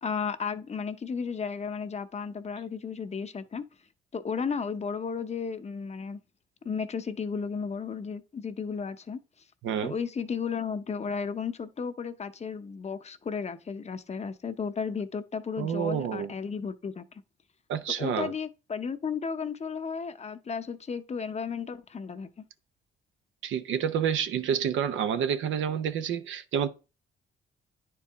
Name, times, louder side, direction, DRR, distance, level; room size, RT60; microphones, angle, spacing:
voice 1, 0.0-3.6 4.1-6.2 6.6-9.2 9.8-17.1 18.0-22.3, left 6 dB, 35° left, 0.7 m, -34 dB
voice 2, 15.6-16.3 17.7-18.3 23.4-26.7, right 8 dB, 75° right, 0.7 m, -28 dB
9.7 x 4.6 x 3.5 m
cardioid pair, 90°, 20 cm